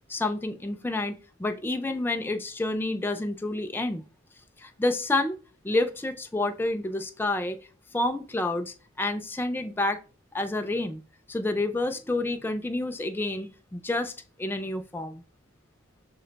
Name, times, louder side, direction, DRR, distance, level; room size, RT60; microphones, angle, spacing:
voice 1, 0.1-4.0 4.6-5.4 5.6-7.6 7.9-10.0 10.3-11.0 11.3-14.1 14.4-15.2, left 2 dB, 10° left, 0.3 m, -29 dB
6.3 x 2.1 x 3.8 m
head